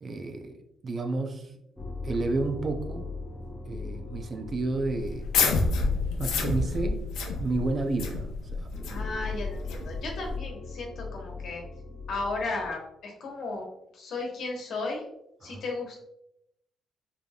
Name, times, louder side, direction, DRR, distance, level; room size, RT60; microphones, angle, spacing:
voice 1, 0.0-1.5 2.0-3.1 3.7-5.2 6.2-7.0 7.4-8.3 8.5-8.7 15.4-15.6, right 3 dB, 40° right, 6 dB, 0.5 m, -31 dB
sound 1, 1.8-12.7, left 3 dB, 5° left, 0.8 m, -40 dB
sound 2, 5.0-10.4, left 3 dB, 85° left, 0.6 m, -29 dB
voice 2, 8.9-11.6 12.1-13.7 13.9-15.0 15.4-16.0, left 3 dB, 70° left, 0 dB, 1.1 m, -35 dB
3.8 x 3.4 x 2.2 m, 0.80 s
cardioid pair, 90°, 0 cm